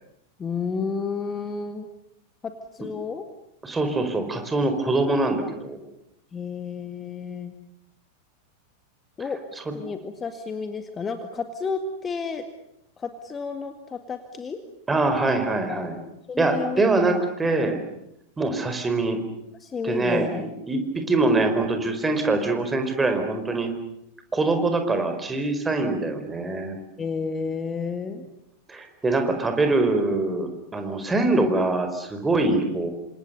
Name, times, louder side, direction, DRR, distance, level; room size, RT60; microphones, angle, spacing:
voice 1, 0.4-1.9 2.4-3.2 6.3-7.5 9.2-9.4 9.7-12.4 13.0-14.6 15.7-15.9 16.3-17.1 17.7-17.8 19.6-20.5 27.0-28.3, left 5 dB, 20° left, 7 dB, 2.0 m, -31 dB
voice 2, 3.6-5.8 14.9-16.0 16.4-17.8 18.4-19.2 19.8-20.3 20.7-23.7 24.3-26.8 28.7-32.9, right 2 dB, 15° right, 7 dB, 4.7 m, -23 dB
28.5 x 26.5 x 6.8 m, 0.80 s
figure-of-eight pair, 90°, 0 cm